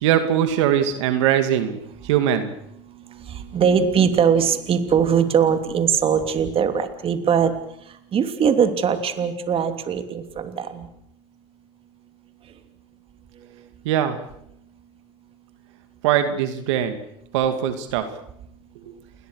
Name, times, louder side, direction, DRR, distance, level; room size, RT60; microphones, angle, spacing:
voice 1, 0.0-1.8 2.0-2.5 13.8-14.2 16.0-17.0 17.3-18.1 18.9-19.0, right 10 dB, 75° right, 8 dB, 2.6 m, -21 dB
voice 2, 3.1-7.5 8.1-10.9, right 7 dB, 35° right, 8 dB, 3.1 m, -21 dB
29.5 x 21.0 x 6.6 m, 0.77 s
hypercardioid pair, 95°, 15 cm